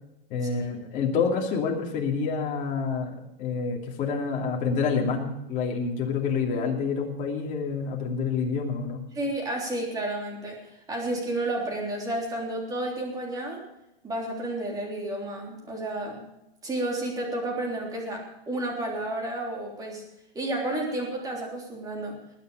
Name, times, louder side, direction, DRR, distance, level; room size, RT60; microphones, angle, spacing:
voice 1, 0.3-9.0, left 5 dB, 25° left, 0 dB, 2.7 m, -28 dB
voice 2, 9.1-13.6 14.0-16.2 16.6-20.0 20.3-22.2, right 1 dB, 10° right, -1 dB, 3.4 m, -31 dB
20.0 x 9.1 x 4.9 m, 0.87 s
supercardioid pair, 160°, 29 cm